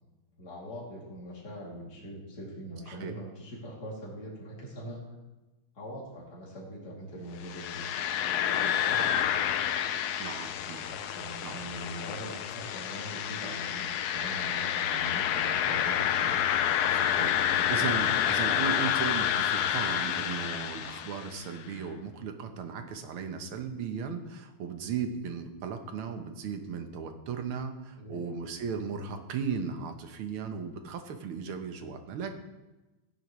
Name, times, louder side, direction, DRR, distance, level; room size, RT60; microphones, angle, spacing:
voice 1, 0.4-5.0 5.7-8.0 8.4-9.2 10.9-16.4 17.3-17.7 27.9-28.4, equal, 45° left, -5 dB, 3.2 m, -42 dB
sound 1, 7.4-21.4, left 10 dB, 75° left, 0.8 m, -29 dB
voice 2, 10.2-10.9 11.4-11.6 16.9-32.4, right 6 dB, 80° right, 6 dB, 1.9 m, -36 dB
16.0 x 10.5 x 3.1 m, 1.1 s
omnidirectional pair, 2.4 m